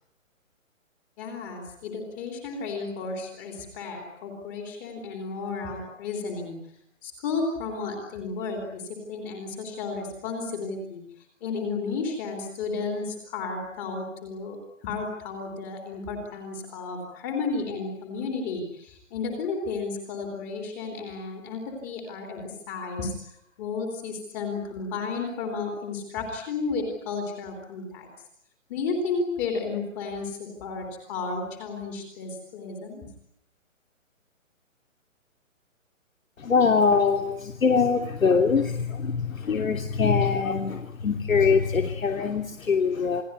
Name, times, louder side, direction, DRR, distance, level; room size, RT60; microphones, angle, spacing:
voice 1, 1.2-6.6 7.0-8.8 9.1-11.0 11.4-28.1 28.7-33.1, left 4 dB, 15° left, 3 dB, 3.6 m, -33 dB
voice 2, 36.4-43.2, left 5 dB, 80° left, 5 dB, 3.3 m, -23 dB
28.5 x 20.5 x 9.7 m, 0.73 s
hypercardioid pair, 180°, 40 cm